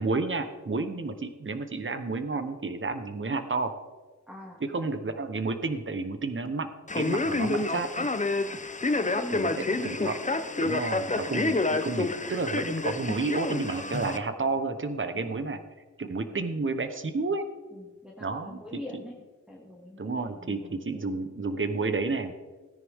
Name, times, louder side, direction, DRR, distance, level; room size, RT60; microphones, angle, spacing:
voice 1, 0.0-3.7 4.6-6.7 6.9-8.0 9.3-9.5 9.8-10.1 10.6-15.6 16.0-17.4 18.2-18.6 20.0-22.4, right 3 dB, 40° right, 8 dB, 1.1 m, -31 dB
voice 2, 4.3-4.6 8.4-8.6 8.9-10.2 15.1-15.6 16.3-16.4 17.7-19.2 19.5-21.0, left 1 dB, 5° right, -5 dB, 2.2 m, -43 dB
Male speech man speaking, 6.9-14.2, left 3 dB, 25° left, 0.7 m, -28 dB
17.5 x 9.9 x 3.7 m, 1.3 s
wide cardioid pair, 85°, 30 cm